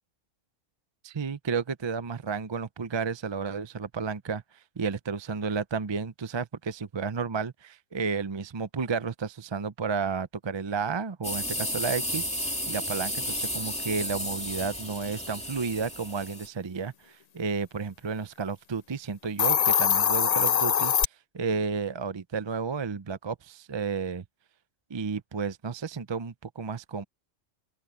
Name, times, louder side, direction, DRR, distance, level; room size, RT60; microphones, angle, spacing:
voice 1, 1.0-4.4 4.8-12.3 12.7-20.9 21.3-24.2 24.9-27.0, right 5 dB, 35° right, 0.4 m, -32 dB
sound 1, 11.2-16.5, equal, 5° left, 2.4 m, -33 dB
Hiss, 19.2-21.0, left 8 dB, 55° left, 0.4 m, -23 dB
open air
omnidirectional pair, 1.3 m